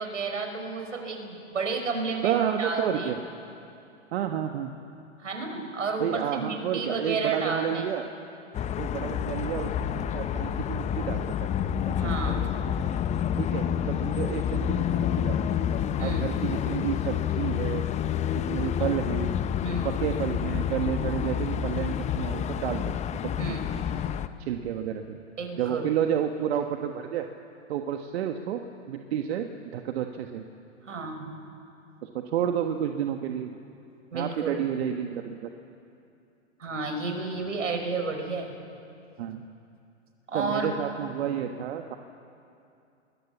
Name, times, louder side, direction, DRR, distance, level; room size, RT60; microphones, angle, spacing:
voice 1, 0.0-3.2 5.2-7.9 12.0-12.5 16.0-16.3 19.6-20.0 23.4-23.8 25.4-25.9 30.8-31.4 34.1-34.6 36.6-38.6 40.3-40.7, right 4 dB, 80° right, 4 dB, 5.4 m, -31 dB
voice 2, 2.2-3.2 4.1-4.7 6.0-8.0 8.8-11.2 11.9-12.2 12.4-12.5 13.4-15.4 16.0-17.8 18.5-19.4 19.8-22.9 23.5-23.6 24.4-25.2 25.6-27.3 27.7-30.4 32.0-33.5 34.1-35.4 39.2-39.4 40.3-42.0, right 9 dB, 60° right, 5 dB, 1.5 m, -30 dB
Nashville Streets, 8.5-24.3, left 9 dB, 20° left, 0.7 m, -28 dB
27.5 x 21.5 x 7.3 m, 2.6 s
hypercardioid pair, 115°, 37 cm